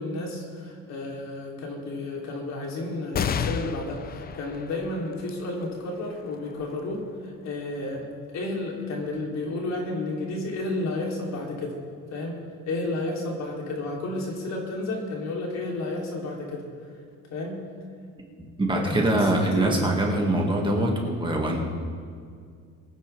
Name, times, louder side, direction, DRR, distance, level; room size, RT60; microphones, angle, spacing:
voice 1, 0.0-8.1 8.3-11.8 12.1-12.4 12.7-16.6 17.3-17.6 18.7-20.2, left 2 dB, 55° left, -1 dB, 3.3 m, -32 dB
sound 1, 3.1-10.0 10.6-10.7 11.9-12.4, left 7 dB, 30° left, 0.5 m, -35 dB
voice 2, 18.4-21.6, right 1 dB, 15° right, -1 dB, 2.0 m, -24 dB
23.0 x 9.8 x 3.5 m, 2.1 s
cardioid pair, 120°, 32 cm